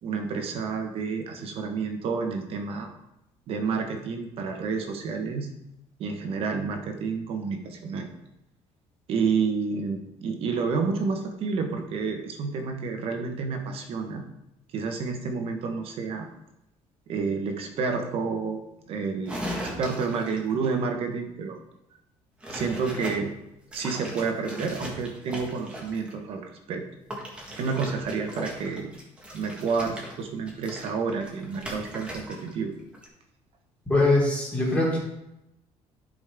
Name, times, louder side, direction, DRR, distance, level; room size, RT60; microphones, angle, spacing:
voice 1, 0.0-2.9 3.5-5.5 6.0-8.1 9.1-14.2 14.7-16.3 17.1-21.6 22.5-23.3 23.7-26.8 27.6-28.9 29.3-32.7, right 5 dB, 55° right, 4 dB, 1.2 m, -29 dB
sound 1, 19.3-20.5 22.4-23.2 23.7-26.1 27.1-32.5 32.8-33.1, equal, 10° right, 1.6 m, -38 dB
voice 2, 33.9-35.0, left 2 dB, 10° left, -5 dB, 2.9 m, -22 dB
11.0 x 5.2 x 3.7 m, 0.85 s
cardioid pair, 160°, 12 cm